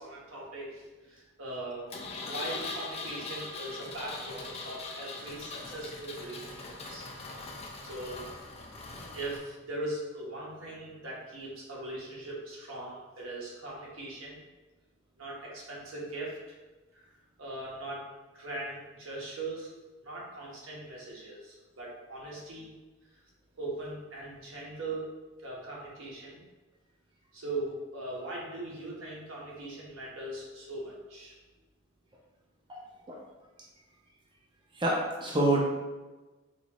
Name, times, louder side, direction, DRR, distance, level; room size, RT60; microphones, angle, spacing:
voice 1, 0.0-1.9 2.2-7.0 7.8-8.2 9.1-14.4 15.2-16.6 16.9-17.1 17.4-18.0 18.3-19.7 20.0-22.7 23.5-25.1 25.4-26.4 27.3-31.3, right 2 dB, 90° right, -5 dB, 1.1 m, -40 dB
Engine, 1.9-9.4, left 3 dB, 30° left, 0.4 m, -41 dB
voice 2, 34.8-35.6, right 1 dB, 25° right, -3 dB, 0.5 m, -27 dB
4.1 x 2.4 x 3.0 m, 1.2 s
head